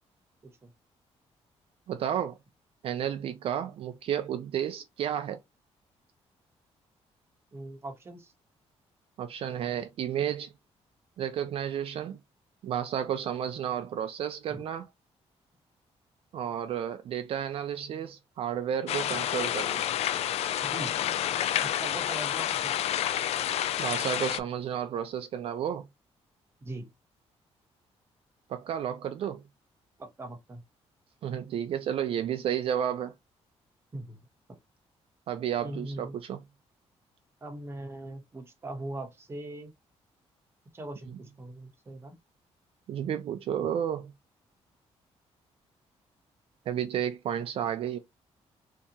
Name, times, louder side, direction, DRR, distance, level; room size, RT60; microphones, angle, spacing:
voice 1, 1.9-2.4 2.8-5.4 9.2-10.5 11.2-12.2 12.6-14.9 16.3-19.8 23.8-25.8 28.5-29.4 31.2-33.1 35.3-36.4 41.1-41.2 42.9-44.1 46.7-48.0, right 9 dB, 60° right, 0.4 m, -32 dB
voice 2, 7.5-8.3 14.5-14.6 20.6-21.1 21.6-22.8 26.6-26.9 30.0-30.6 33.9-34.2 35.6-36.2 37.4-39.7 40.7-42.2, right 2 dB, 20° right, 0.8 m, -40 dB
sound 1, 18.9-24.4, left 11 dB, 70° left, 0.4 m, -29 dB
3.4 x 2.7 x 2.7 m
cardioid pair, 150°, 11 cm